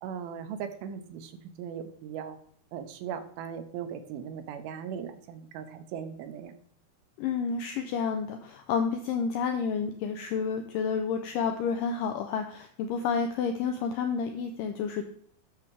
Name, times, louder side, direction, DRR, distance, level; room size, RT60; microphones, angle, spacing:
voice 1, 0.0-1.3 1.6-2.4 2.7-6.5, right 8 dB, 85° right, 8 dB, 2.6 m, -38 dB
voice 2, 7.2-15.0, left 6 dB, 80° left, 6 dB, 2.0 m, -30 dB
9.7 x 7.0 x 3.3 m, 0.63 s
omnidirectional pair, 4.4 m